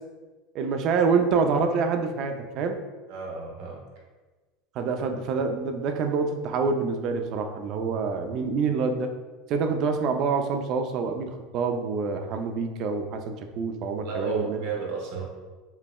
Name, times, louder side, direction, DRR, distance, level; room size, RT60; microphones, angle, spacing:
voice 1, 0.5-2.8 4.8-9.1 9.5-14.6, right 5 dB, 50° right, 5 dB, 0.4 m, -26 dB
voice 2, 3.1-3.8 14.0-15.2, right 5 dB, 70° right, -2 dB, 1.0 m, -33 dB
5.6 x 2.1 x 2.3 m, 1.3 s
supercardioid pair, 115°, 0 cm